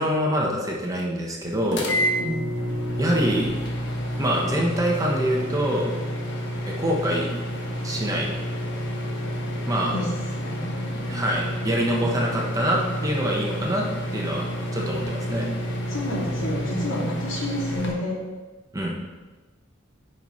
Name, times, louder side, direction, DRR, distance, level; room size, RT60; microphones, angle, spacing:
voice 1, 0.0-1.9 3.0-3.5 4.2-6.0 6.7-7.3 7.8-8.3 9.7-9.9 11.1-13.9 14.1-14.5 14.7-15.5 18.7-18.9, equal, 15° right, -1 dB, 1.0 m, -25 dB
sound 1, 1.7-17.9, equal, 60° left, 1.2 m, -29 dB
voice 2, 2.2-2.5 9.9-10.1 10.5-11.2 15.9-18.2, left 1 dB, 75° left, -4 dB, 2.2 m, -30 dB
9.3 x 5.5 x 3.1 m, 1.2 s
head